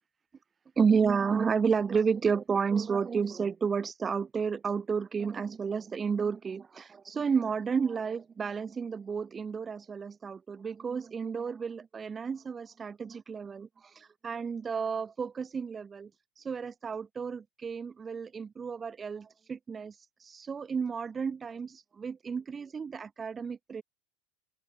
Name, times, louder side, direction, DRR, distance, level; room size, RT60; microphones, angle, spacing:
voice 1, 0.8-16.1 16.4-23.8, right 6 dB, 15° right, 2.0 m, -31 dB
open air
supercardioid pair, 175°, 0 cm